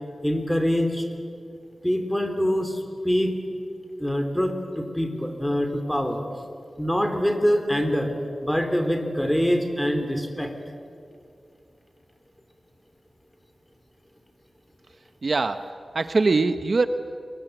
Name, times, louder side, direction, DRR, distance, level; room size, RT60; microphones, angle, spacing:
voice 1, 0.2-1.0 1.8-3.3 4.0-6.2 6.8-8.1 8.4-10.5, equal, 5° left, 6 dB, 3.4 m, -24 dB
voice 2, 15.2-16.9, right 3 dB, 55° right, 10 dB, 0.9 m, -23 dB
29.0 x 22.5 x 8.0 m, 2.4 s
wide cardioid pair, 90°, 0 cm